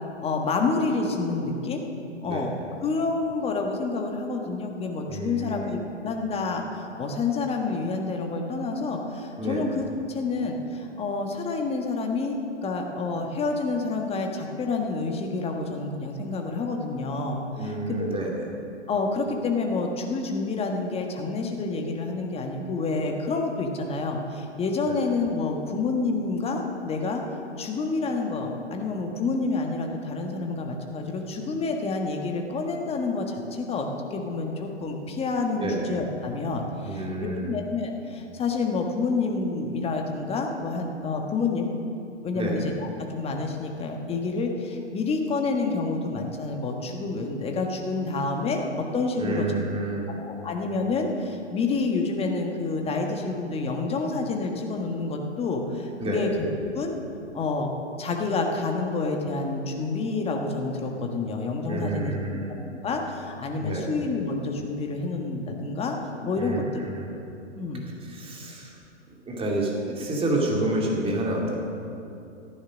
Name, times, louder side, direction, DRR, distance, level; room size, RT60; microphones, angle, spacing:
voice 1, 0.2-1.8 2.2-2.5 2.8-12.4 12.6-18.1 18.9-27.2 27.6-41.7 42.2-48.6 48.9-49.5 50.2-56.9 57.3-62.4 62.8-66.6 67.5-67.8, left 3 dB, 15° left, 2 dB, 1.5 m, -28 dB
voice 2, 5.1-5.7 9.4-9.6 17.6-18.3 24.9-25.0 35.6-35.9 36.8-37.5 42.3-42.6 49.2-50.1 56.0-56.2 61.7-62.5 63.6-63.9 66.4-67.1 68.1-68.7 69.3-71.5, right 1 dB, 15° right, -2 dB, 2.7 m, -29 dB
14.5 x 10.0 x 6.3 m, 2.7 s
figure-of-eight pair, 115°, 36 cm